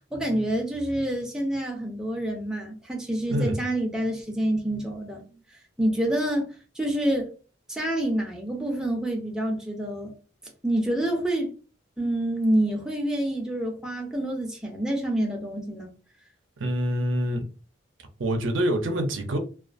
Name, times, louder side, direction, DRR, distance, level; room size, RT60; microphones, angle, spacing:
voice 1, 0.1-5.2 5.8-7.3 7.7-10.1 10.6-11.5 12.0-15.9, right 1 dB, 5° right, 0.5 m, -27 dB
voice 2, 3.3-3.6 5.3-5.4 16.6-17.4 18.2-19.4, equal, 70° right, 0.5 m, -26 dB
2.4 x 2.3 x 2.5 m
head